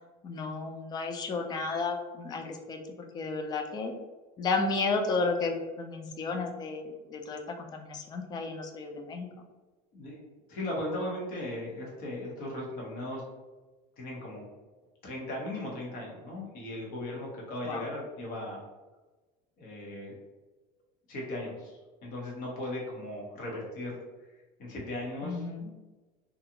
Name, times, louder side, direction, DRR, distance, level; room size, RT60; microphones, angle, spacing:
voice 1, 0.2-3.9 4.4-9.5 17.6-17.9 25.2-25.7, left 3 dB, 20° left, 4 dB, 0.3 m, -33 dB
voice 2, 10.5-13.2 14.0-14.4 15.0-18.6 19.6-20.2 21.1-24.0 24.6-25.5, left 1 dB, 50° left, -3 dB, 1.0 m, -37 dB
2.5 x 2.4 x 2.8 m, 1.2 s
cardioid pair, 145°, 19 cm